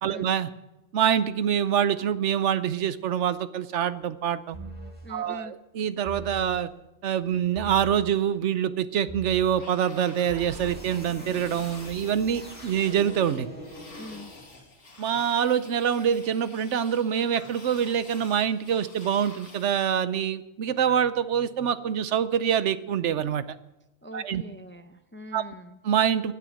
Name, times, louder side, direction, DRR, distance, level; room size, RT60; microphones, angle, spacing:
voice 1, 0.0-0.5 0.9-4.6 5.1-6.7 7.0-13.5 15.0-23.4 24.1-24.4 25.3-25.5 25.8-26.3, right 9 dB, 80° right, 14 dB, 1.1 m, -25 dB
sound 1, 4.5-5.1 6.0-6.6 7.5-8.1 9.1-9.6 10.3-14.7, right 1 dB, 10° right, 5.1 m, -42 dB
voice 2, 5.0-5.5 14.0-14.3 24.0-25.8, left 1 dB, 15° left, 9 dB, 0.5 m, -43 dB
sound 2, 9.6-19.9, left 2 dB, 90° left, 2.4 m, -48 dB
16.0 x 9.4 x 6.3 m, 0.96 s
omnidirectional pair, 1.2 m